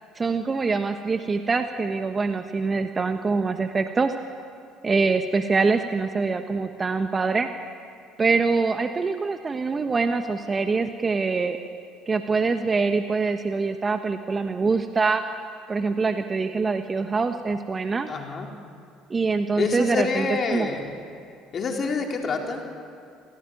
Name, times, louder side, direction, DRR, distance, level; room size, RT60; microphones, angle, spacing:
voice 1, 0.1-4.1 4.8-7.5 8.2-11.6 12.1-15.2 15.7-18.1 19.1-20.7, right 4 dB, 30° right, 7 dB, 1.3 m, -24 dB
voice 2, 18.1-18.5 19.6-20.9 21.5-22.6, left 4 dB, 40° left, 2 dB, 4.0 m, -27 dB
28.0 x 16.5 x 9.3 m, 2.4 s
hypercardioid pair, 60°, 0 cm